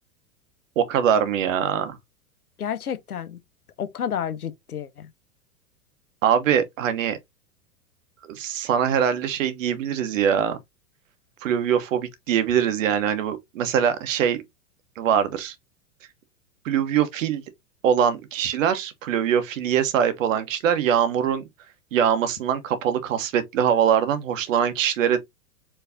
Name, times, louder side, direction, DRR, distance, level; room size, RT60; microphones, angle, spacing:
voice 1, 0.8-2.0 6.2-7.2 8.3-10.6 11.4-14.4 15.0-15.5 16.6-17.4 17.8-21.4 21.9-25.2, right 8 dB, 60° right, 1.1 m, -22 dB
voice 2, 2.6-3.4 3.8-5.1, left 8 dB, 85° left, 0.8 m, -30 dB
4.8 x 3.2 x 2.6 m
figure-of-eight pair, 100°, 44 cm